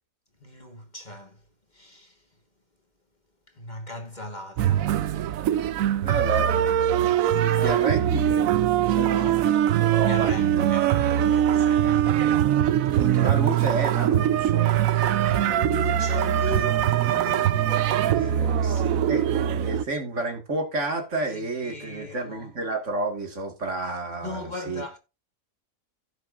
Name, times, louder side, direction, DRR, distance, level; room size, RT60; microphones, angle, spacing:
voice 1, 0.4-1.4 1.7-2.2 3.5-4.9 7.5-8.0 9.8-11.9 14.9-19.5 21.3-22.5 24.2-25.0, left 1 dB, 30° left, 1.5 m, -38 dB
sound 1, 4.6-19.8, right 11 dB, 75° right, 1.0 m, -22 dB
voice 2, 5.9-9.4 9.9-10.7 12.7-14.9 19.1-24.8, right 3 dB, 55° right, 2.1 m, -31 dB
16.0 x 6.4 x 2.5 m
omnidirectional pair, 1.5 m